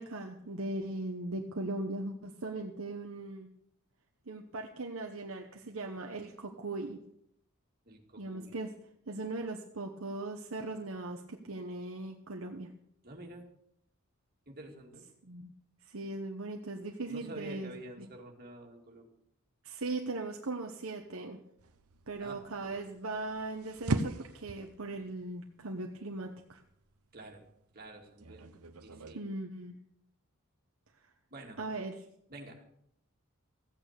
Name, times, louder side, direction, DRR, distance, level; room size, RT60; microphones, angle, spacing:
voice 1, 0.0-3.5 4.3-7.0 8.2-8.7 9.1-12.7 15.2-15.5 15.9-17.7 18.0-18.1 19.6-21.4 22.1-26.6 29.1-29.7 31.6-32.0, right 2 dB, 65° right, 2 dB, 1.1 m, -39 dB
voice 2, 7.9-8.6 13.0-13.5 14.5-15.1 17.1-19.1 22.2-22.8 27.1-27.5 27.7-29.3 31.3-31.6 32.3-32.6, right 2 dB, 45° right, 1 dB, 2.5 m, -49 dB
sound 1, 21.6-29.1, right 2 dB, 85° right, 0.9 m, -41 dB
15.0 x 8.9 x 6.8 m, 0.71 s
head